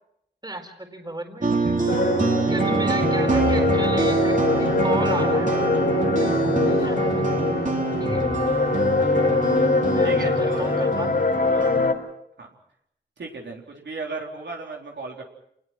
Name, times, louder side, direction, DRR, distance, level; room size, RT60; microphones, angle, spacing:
voice 1, 0.4-1.5 2.4-5.7 6.0-7.5 8.0-8.3 9.5-11.2 11.5-11.8, right 1 dB, 20° right, 5 dB, 4.4 m, -35 dB
sound 1, 1.4-11.9, right 3 dB, 45° right, 3.2 m, -25 dB
sound 2, 1.9-11.9, left 2 dB, 60° left, 3.8 m, -23 dB
sound 3, 3.3-9.3, left 2 dB, 35° left, 2.6 m, -35 dB
voice 2, 6.9-7.2 8.4-9.1 10.0-10.9 12.4-12.5 13.2-15.2, right 3 dB, 75° right, 0 dB, 4.0 m, -36 dB
27.5 x 20.0 x 6.0 m, 0.78 s
cardioid pair, 55°, 19 cm